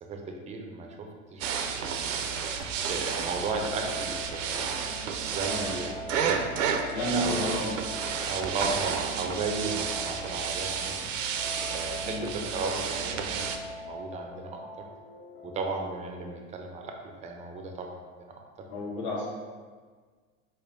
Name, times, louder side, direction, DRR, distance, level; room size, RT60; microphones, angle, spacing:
voice 1, 0.0-2.2 2.9-4.9 5.3-6.5 7.1-7.5 8.3-11.1 11.7-14.6 15.4-18.4, right 3 dB, 20° right, 2 dB, 0.4 m, -35 dB
sound 1, 1.4-13.6, right 6 dB, 70° right, 0.5 m, -31 dB
sound 2, 3.4-15.9, left 1 dB, 90° left, 0.8 m, -43 dB
voice 2, 6.9-7.8 12.0-12.3 18.7-19.3, left 1 dB, 50° left, -5 dB, 1.3 m, -31 dB
4.1 x 3.3 x 2.6 m, 1.5 s
hypercardioid pair, 90°, 39 cm